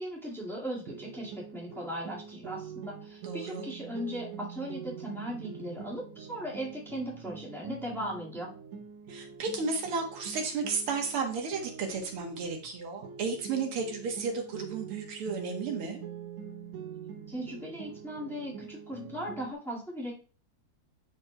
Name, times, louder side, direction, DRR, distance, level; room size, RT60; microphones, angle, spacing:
voice 1, 0.0-8.5 17.3-20.1, equal, ahead, -5 dB, 1.0 m, -38 dB
sound 1, 0.9-12.7 13.0-19.5, right 7 dB, 75° right, 2.1 m, -45 dB
voice 2, 3.2-3.7 9.1-16.0, right 4 dB, 60° right, 3 dB, 1.7 m, -33 dB
11.5 x 4.2 x 2.2 m, 0.38 s
omnidirectional pair, 3.4 m